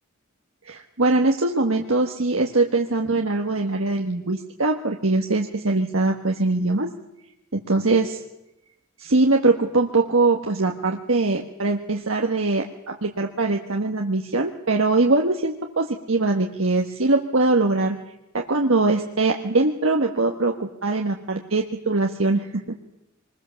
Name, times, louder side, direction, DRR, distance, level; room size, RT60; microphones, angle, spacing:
voice 1, 0.6-6.9 7.5-8.2 9.0-18.0 18.3-22.6, right 3 dB, 70° right, 2 dB, 1.5 m, -22 dB
24.5 x 21.5 x 7.1 m, 0.88 s
head